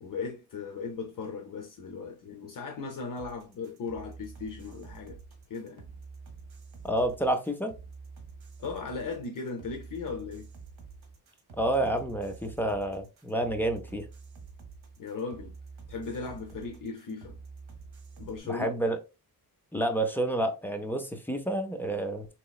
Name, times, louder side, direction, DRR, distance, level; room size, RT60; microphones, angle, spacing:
voice 1, 0.0-5.2 5.5-5.9 8.6-10.5 15.0-15.6 15.9-17.4 18.2-18.8, left 4 dB, 55° left, 0.7 m, -37 dB
sound 1, 3.2-18.4, right 4 dB, 75° right, 1.1 m, -48 dB
voice 2, 6.8-7.7 11.6-14.1 18.4-19.0 19.7-22.3, right 1 dB, 5° left, 0.4 m, -29 dB
3.9 x 3.0 x 2.3 m
wide cardioid pair, 160°, 39 cm